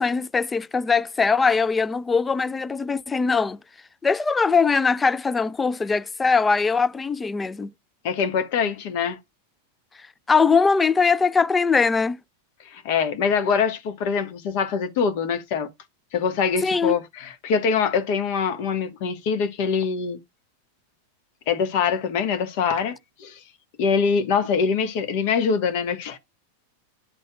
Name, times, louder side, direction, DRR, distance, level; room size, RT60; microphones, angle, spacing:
voice 1, 0.0-3.6 4.0-7.7 10.3-12.2 16.6-16.9, left 5 dB, 15° left, 0.3 m, -21 dB
voice 2, 8.0-9.2 12.6-15.7 16.1-20.2 21.5-23.4 23.8-26.2, left 6 dB, 45° left, 1.3 m, -24 dB
11.5 x 4.1 x 2.3 m
figure-of-eight pair, 90°, 0 cm